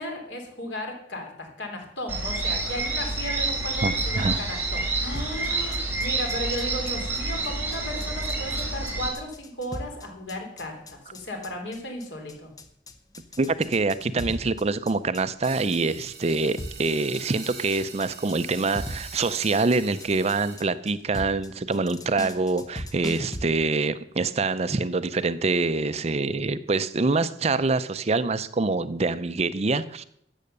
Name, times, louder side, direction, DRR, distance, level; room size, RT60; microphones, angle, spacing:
voice 1, 0.0-12.5, left 1 dB, 80° left, 3 dB, 3.4 m, -35 dB
sound 1, 2.1-9.1, right 3 dB, 10° right, 3.4 m, -28 dB
voice 2, 3.8-4.4 13.4-30.0, right 3 dB, 35° right, 14 dB, 0.5 m, -25 dB
sound 2, 5.1-23.4, left 1 dB, 20° left, 0.9 m, -39 dB
sound 3, 15.4-20.6, right 5 dB, 60° right, 2.9 m, -43 dB
13.5 x 8.5 x 6.6 m, 0.73 s
head